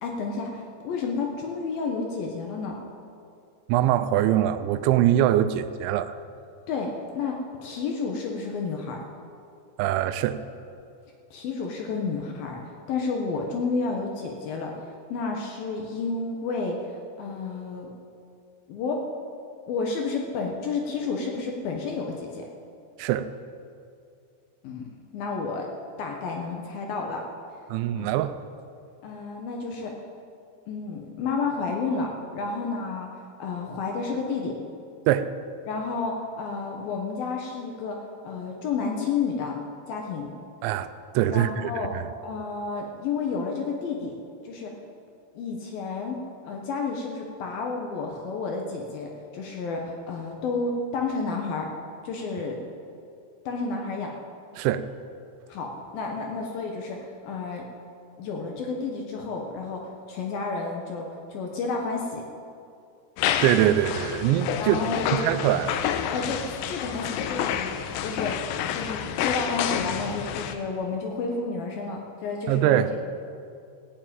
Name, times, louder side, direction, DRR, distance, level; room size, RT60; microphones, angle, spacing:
voice 1, 0.0-2.8 6.7-9.0 11.3-17.9 18.7-19.1 19.7-22.5 24.6-24.8 25.1-25.7 26.0-27.2 28.0-28.1 29.0-30.0 30.7-34.6 35.7-38.0 38.2-39.6 39.9-40.3 41.3-41.9 42.2-44.2 44.4-44.7 45.4-46.2 46.4-51.7 52.0-52.6 53.5-54.1 55.5-57.6 58.2-62.2 64.6-65.3 66.1-72.8, left 4 dB, 70° left, 1 dB, 2.5 m, -31 dB
voice 2, 3.7-6.2 9.8-10.4 23.0-23.3 27.7-28.4 35.1-35.3 40.6-40.9 41.1-41.9 54.6-54.9 63.4-64.8 65.1-65.9 72.5-72.9, right 12 dB, 85° right, 12 dB, 2.9 m, -23 dB
sound 1, 63.2-70.5, left 9 dB, 85° left, 2.9 m, -29 dB
16.0 x 7.6 x 8.7 m, 2.5 s
omnidirectional pair, 5.2 m